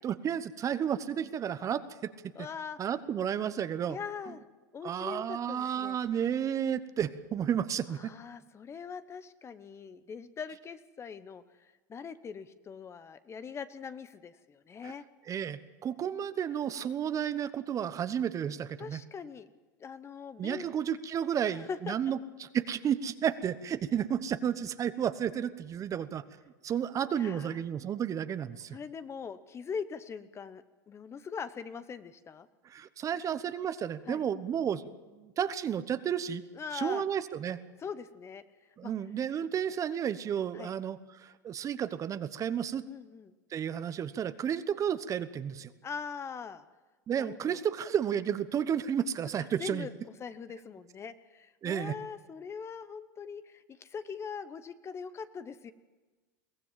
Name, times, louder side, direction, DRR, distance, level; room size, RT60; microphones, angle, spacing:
voice 1, 0.0-2.1 2.8-4.0 4.8-8.1 14.8-14.9 15.3-19.0 20.4-26.2 26.6-28.8 32.6-36.4 36.7-37.6 38.8-42.8 43.5-45.7 47.1-49.9 51.6-51.9, right 8 dB, 35° right, 13 dB, 1.0 m, -32 dB
voice 2, 2.3-2.8 3.9-4.4 4.7-6.0 7.9-15.1 18.8-19.5 19.8-20.7 21.4-22.1 27.1-27.6 28.7-32.5 34.1-34.2 36.5-37.0 37.8-38.4 38.8-38.9 40.5-40.7 42.9-43.3 45.8-46.7 47.2-47.6 49.4-55.7, left 6 dB, 25° left, 13 dB, 1.0 m, -42 dB
22.5 x 16.5 x 7.6 m, 1.2 s
hypercardioid pair, 100°, 10 cm